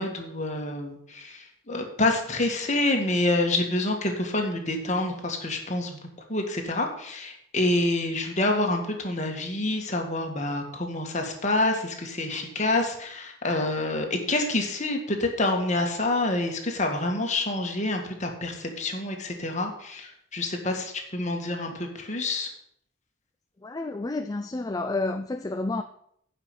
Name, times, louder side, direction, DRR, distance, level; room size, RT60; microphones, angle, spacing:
voice 1, 0.0-6.0 6.3-22.5, left 2 dB, 35° left, 2.0 m, -27 dB
voice 2, 23.6-25.8, left 2 dB, 20° left, 0.4 m, -30 dB
9.7 x 6.0 x 8.6 m
head